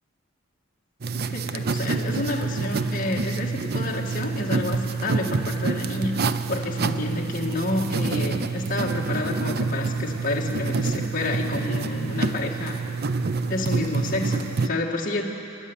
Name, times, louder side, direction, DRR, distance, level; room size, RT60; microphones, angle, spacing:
sound 1, 1.0-14.7, right 4 dB, 50° right, 0.6 m, -27 dB
voice 1, 1.1-12.8 13.5-15.2, left 2 dB, 40° left, -1 dB, 2.0 m, -29 dB
25.0 x 10.5 x 9.9 m, 2.7 s
head